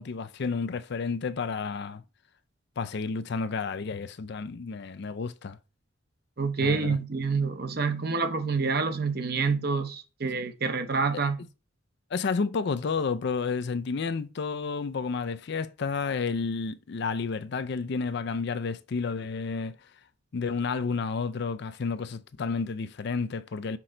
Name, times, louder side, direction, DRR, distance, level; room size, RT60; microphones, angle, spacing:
voice 1, 0.0-2.0 2.8-5.6 6.6-7.0 12.1-19.8 20.3-23.8, left 4 dB, 55° left, 0.4 m, -31 dB
voice 2, 6.4-11.4, right 4 dB, 50° right, 0.8 m, -27 dB
6.0 x 3.8 x 4.4 m
head